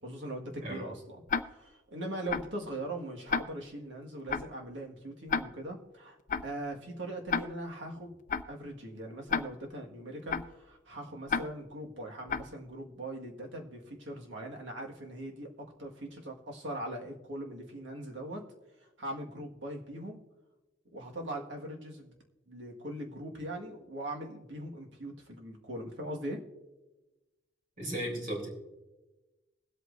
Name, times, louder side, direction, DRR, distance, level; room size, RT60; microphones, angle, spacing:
voice 1, 0.0-6.2 6.4-8.2 8.5-18.4 18.8-20.2 20.9-22.1 22.4-26.4, right 1 dB, 75° right, 0 dB, 1.8 m, -41 dB
Tick-tock, 1.3-1.4 2.3-2.4 3.3-3.4 4.3-4.4 5.3-5.4 6.3-6.4 7.3-7.4 8.3-8.4 9.3-9.4 10.3-10.4 11.3-11.4 12.3-12.4, left 6 dB, 45° left, 0.4 m, -29 dB
voice 2, 27.8-28.5, right 1 dB, 45° right, 0 dB, 3.4 m, -35 dB
21.5 x 8.3 x 2.6 m, 1.1 s
head